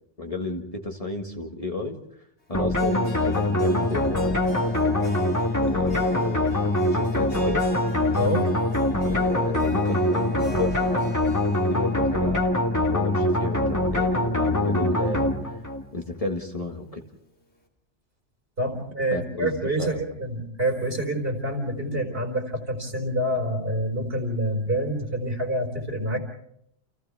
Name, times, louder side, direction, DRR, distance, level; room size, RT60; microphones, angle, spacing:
voice 1, 0.2-2.0 2.5-5.0 5.6-7.7 9.0-11.2 11.7-15.6 15.9-17.0 19.1-20.0 21.9-22.0, left 3 dB, 30° left, 2 dB, 1.9 m, -32 dB
sound 1, 2.5-15.9, left 1 dB, 15° left, 1.9 m, -24 dB
Harp, 2.7-14.9, equal, 70° left, 3.1 m, -39 dB
voice 2, 8.2-8.5 18.6-26.2, right 1 dB, 55° right, 3 dB, 4.6 m, -27 dB
29.5 x 28.5 x 3.5 m, 0.74 s
omnidirectional pair, 1.2 m